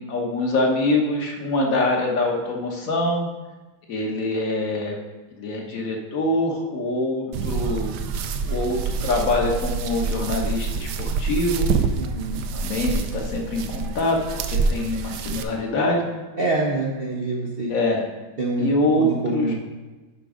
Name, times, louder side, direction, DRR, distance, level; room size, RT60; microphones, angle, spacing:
voice 1, 0.0-3.3 3.9-5.0 5.3-7.9 8.4-11.7 12.5-16.1 17.7-18.0 18.6-19.5, left 2 dB, 45° left, 0 dB, 1.4 m, -24 dB
sound 1, 7.3-15.4, right 5 dB, 70° right, 1.0 m, -26 dB
voice 2, 12.0-12.4 16.4-17.7 18.4-18.7 18.9-19.5, right 2 dB, 55° right, -3 dB, 0.6 m, -25 dB
11.5 x 3.8 x 5.0 m, 1.2 s
omnidirectional pair, 2.3 m